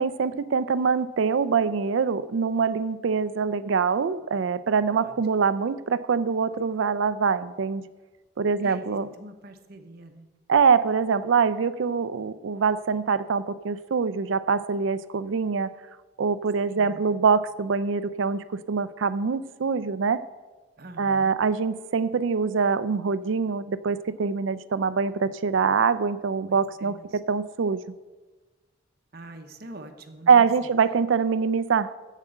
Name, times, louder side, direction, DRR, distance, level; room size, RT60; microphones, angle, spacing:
voice 1, 0.0-7.8 8.4-9.1 10.5-15.7 16.2-20.2 21.0-27.8 30.3-32.0, right 5 dB, 75° right, 16 dB, 0.4 m, -24 dB
voice 2, 9.1-10.3 16.8-17.3 20.8-21.4 26.4-27.2 29.1-30.5, right 2 dB, 50° right, 5 dB, 0.9 m, -44 dB
7.4 x 7.4 x 7.8 m, 1.3 s
head